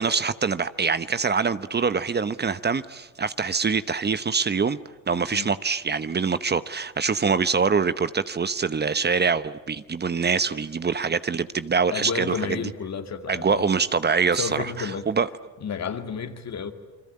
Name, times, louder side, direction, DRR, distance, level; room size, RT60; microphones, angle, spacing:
voice 1, 0.0-4.8 5.1-12.7 13.3-15.3, right 5 dB, 30° right, 0.9 m, -24 dB
voice 2, 11.9-13.7 14.4-15.1 15.6-16.7, left 6 dB, 55° left, 2.3 m, -31 dB
29.0 x 22.5 x 8.7 m
supercardioid pair, 65°, 32 cm